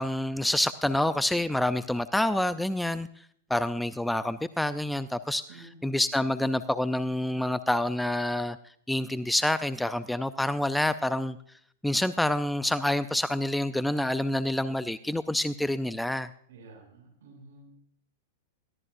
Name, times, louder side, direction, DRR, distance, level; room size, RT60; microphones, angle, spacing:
voice 1, 0.0-3.1 3.5-8.6 8.9-11.4 11.8-16.3, left 1 dB, 5° left, 13 dB, 0.5 m, -27 dB
voice 2, 5.5-5.9 14.4-14.6 16.5-17.7, right 3 dB, 70° right, 3 dB, 7.0 m, -51 dB
21.5 x 16.5 x 2.6 m, 0.63 s
hypercardioid pair, 110°, 0 cm